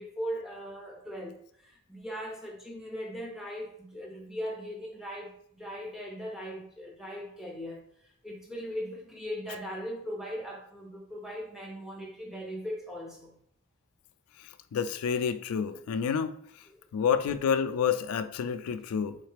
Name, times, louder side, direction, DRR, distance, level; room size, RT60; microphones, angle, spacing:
voice 1, 0.0-13.3 16.7-16.8, equal, ahead, 0.6 m, -39 dB
voice 2, 14.7-16.3 16.9-19.2, left 7 dB, 85° left, 0.3 m, -28 dB
3.8 x 3.2 x 3.2 m
head